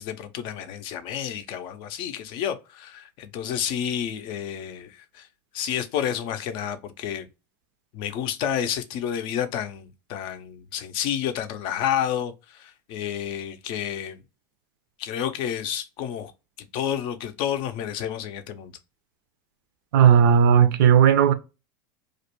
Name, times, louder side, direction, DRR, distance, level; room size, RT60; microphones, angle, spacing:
voice 1, 0.0-5.3 5.5-7.3 7.9-14.2 15.0-16.3 16.7-18.8, left 9 dB, 50° left, 0.4 m, -30 dB
voice 2, 19.9-21.3, right 8 dB, 75° right, 0.5 m, -15 dB
2.4 x 2.1 x 2.8 m
supercardioid pair, 115°, 11 cm